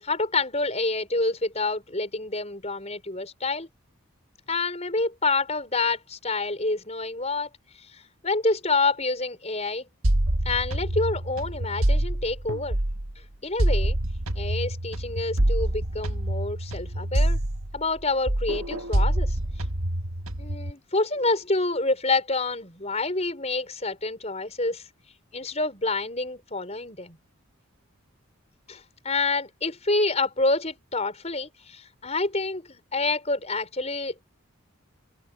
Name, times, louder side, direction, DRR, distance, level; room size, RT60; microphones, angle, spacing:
voice 1, 0.0-3.7 4.5-7.5 7.9-9.9 10.5-12.8 13.4-14.0 14.4-17.4 17.7-19.4 20.4-24.8 25.3-27.2 28.7-34.3, left 3 dB, 30° left, 5.5 m, -27 dB
sound 1, 10.0-13.1 13.6-18.0 18.3-20.7, right 1 dB, 80° right, 1.6 m, -26 dB
open air
head